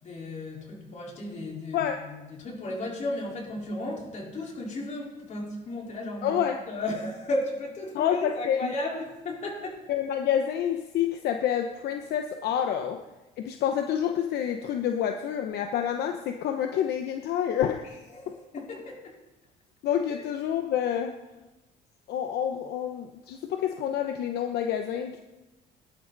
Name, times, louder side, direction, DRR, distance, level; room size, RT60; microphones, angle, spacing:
voice 1, 0.0-6.4 6.7-9.8 18.1-19.0, left 1 dB, 45° left, -2 dB, 4.3 m, -34 dB
voice 2, 6.2-6.6 7.9-8.7 9.9-13.0 13.4-17.9 18.3-18.4 19.8-21.1 22.1-25.2, left 9 dB, 75° left, 5 dB, 1.0 m, -28 dB
19.0 x 11.5 x 4.1 m, 1.1 s
cardioid pair, 110°, 17 cm